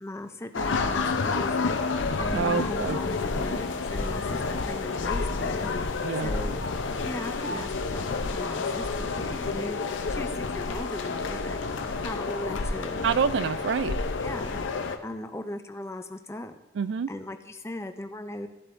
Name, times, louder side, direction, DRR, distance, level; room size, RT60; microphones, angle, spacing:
voice 1, 0.0-1.8 2.2-5.7 6.1-6.6 7.0-8.1 8.3-11.6 12.0-13.1 14.2-14.6 15.0-16.5 17.1-18.5, left 1 dB, 15° left, 7 dB, 0.5 m, -38 dB
sound 1, 0.5-15.0, left 4 dB, 90° left, 0.6 m, -29 dB
voice 2, 2.3-3.0 6.0-6.3 13.0-13.9 16.8-17.1, right 6 dB, 75° right, 15 dB, 0.3 m, -27 dB
13.0 x 8.1 x 2.6 m, 1.0 s
head